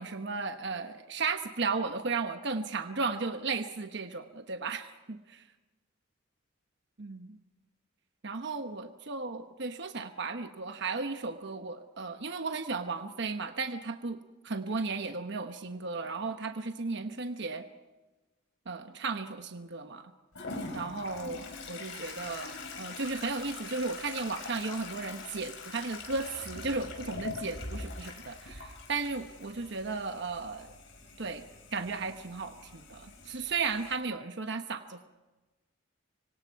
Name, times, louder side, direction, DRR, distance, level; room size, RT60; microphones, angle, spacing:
voice 1, 0.0-5.5 7.0-7.4 8.2-14.2 14.4-17.6 18.7-20.1 20.7-30.7 31.2-31.4 31.7-35.1, right 4 dB, 60° right, 7 dB, 1.1 m, -35 dB
Toilet flush, 20.3-33.9, left 3 dB, 65° left, 4.4 m, -43 dB
26.0 x 25.0 x 4.7 m, 1.1 s
head